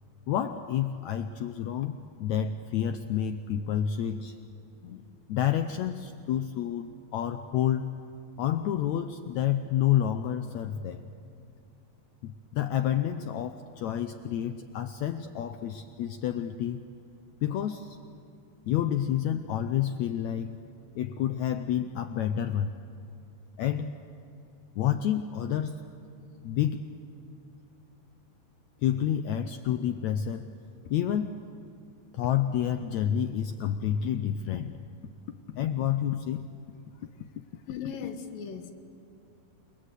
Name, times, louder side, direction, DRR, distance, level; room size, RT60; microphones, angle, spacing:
voice 1, 0.3-4.3 4.8-5.0 5.3-7.9 8.4-11.0 12.2-16.8 17.4-18.0 18.7-20.6 20.9-22.7 23.6-23.9 24.7-25.9 26.4-26.9 28.8-30.5 30.9-31.5 32.1-34.8 35.5-36.5, left 10 dB, 90° left, 9 dB, 1.6 m, -29 dB
voice 2, 37.7-38.7, left 7 dB, 70° left, 7 dB, 3.1 m, -37 dB
29.5 x 21.0 x 8.2 m, 2.6 s
omnidirectional pair, 4.2 m